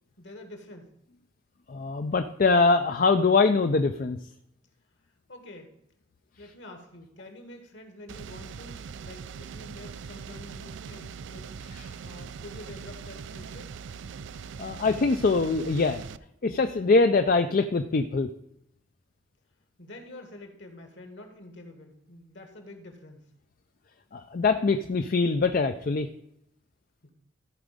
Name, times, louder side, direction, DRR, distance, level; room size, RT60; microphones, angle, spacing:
voice 1, 0.2-0.9 5.3-5.7 6.4-13.7 19.8-23.3 27.0-27.1, left 1 dB, 65° left, 5 dB, 1.8 m, -47 dB
voice 2, 1.7-4.2 11.7-11.8 14.6-16.0 16.4-18.3 24.1-26.1, left 3 dB, 45° left, 8 dB, 0.4 m, -23 dB
sound 1, 8.1-16.2, right 6 dB, 65° right, 0.4 m, -41 dB
14.0 x 5.0 x 5.2 m, 0.78 s
head